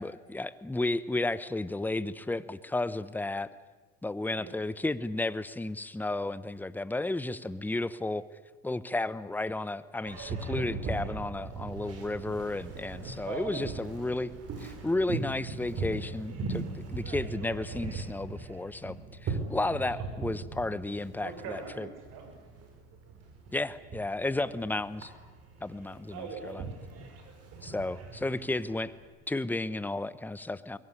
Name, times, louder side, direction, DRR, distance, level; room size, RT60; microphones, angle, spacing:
voice 1, 0.0-3.5 4.0-8.2 8.6-14.3 14.6-19.0 19.2-21.9 23.5-25.1 25.6-26.2 26.4-26.6 27.6-28.9 29.3-30.8, left 2 dB, 5° left, 16 dB, 0.9 m, -33 dB
Boat Water vehicle, 10.0-29.0, right 4 dB, 45° right, 5.9 m, -40 dB
voice 2, 11.8-12.2 13.2-13.7 14.1-14.3 17.0-17.2 21.2-22.3 24.4-24.7 25.9-27.2, right 6 dB, 60° right, 5 dB, 6.5 m, -43 dB
22.0 x 18.0 x 9.9 m, 1.3 s
supercardioid pair, 95°, 35 cm